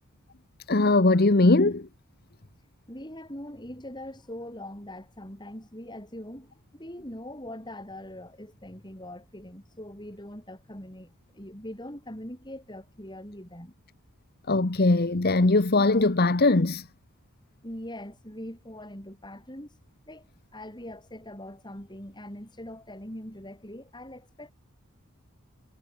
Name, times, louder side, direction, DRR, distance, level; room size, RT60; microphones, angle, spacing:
voice 1, 0.7-1.9 14.5-16.8, left 2 dB, 45° left, 1.0 m, -21 dB
voice 2, 2.9-13.7 17.6-19.7 20.1-24.5, left 1 dB, 20° left, 7.8 m, -42 dB
head